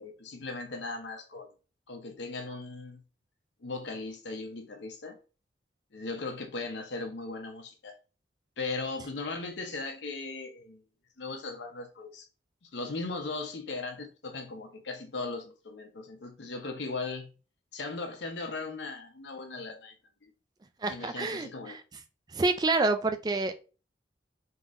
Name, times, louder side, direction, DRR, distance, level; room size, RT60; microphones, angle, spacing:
voice 1, 0.0-1.5 1.9-3.0 3.6-5.2 5.9-8.0 8.6-10.8 11.2-12.2 12.6-17.3 17.7-19.9 20.2-20.3 20.9-21.8, left 3 dB, 80° left, 0.7 m, -38 dB
voice 2, 20.8-21.8 22.3-23.5, right 3 dB, 20° right, 0.3 m, -28 dB
3.7 x 2.9 x 2.5 m
head